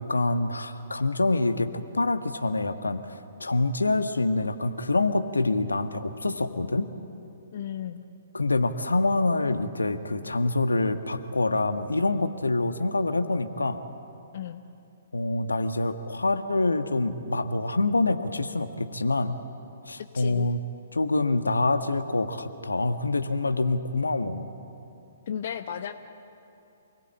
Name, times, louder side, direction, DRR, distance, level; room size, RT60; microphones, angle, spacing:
voice 1, 0.0-6.9 8.3-13.9 15.1-19.4 19.8-20.6 20.9-24.5, left 2 dB, 80° left, 9 dB, 1.4 m, -26 dB
voice 2, 7.5-8.0 14.3-14.6 20.1-20.5 25.3-25.9, left 9 dB, 50° left, 9 dB, 1.0 m, -34 dB
27.5 x 20.0 x 8.9 m, 2.8 s
figure-of-eight pair, 125°, 0 cm